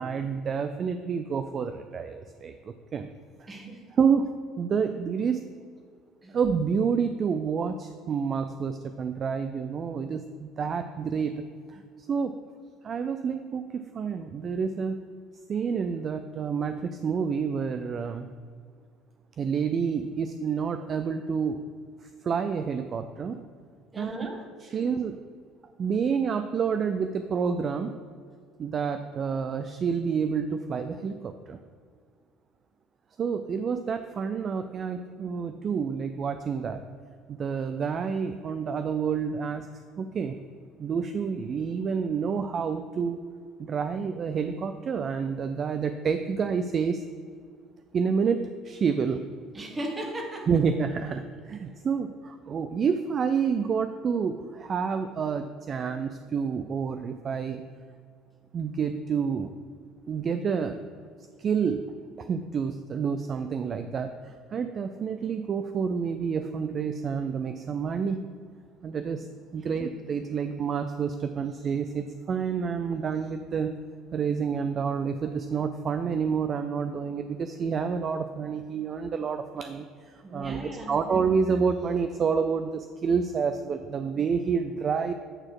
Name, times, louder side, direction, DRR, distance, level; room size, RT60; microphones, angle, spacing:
voice 1, 0.0-3.1 3.4-3.5 4.0-5.4 6.3-11.4 11.7-11.8 12.1-12.3 12.8-15.0 15.5-18.3 19.4-21.6 22.2-23.4 24.0-24.1 24.6-25.2 25.8-27.9 28.6-31.6 33.2-36.8 37.3-39.7 40.0-40.4 40.8-43.2 43.6-47.0 47.9-49.2 50.5-57.6 58.5-59.5 60.1-60.8 61.4-61.8 62.2-68.3 68.8-69.3 69.5-73.7 74.1-85.1, right 6 dB, 35° right, 9 dB, 0.3 m, -28 dB
voice 2, 3.5-3.8 6.2-6.4 23.9-24.8 49.5-50.5 69.6-69.8 80.2-81.0, right 1 dB, 20° right, 3 dB, 1.2 m, -37 dB
8.7 x 4.2 x 4.8 m, 2.1 s
cardioid pair, 125°, 0 cm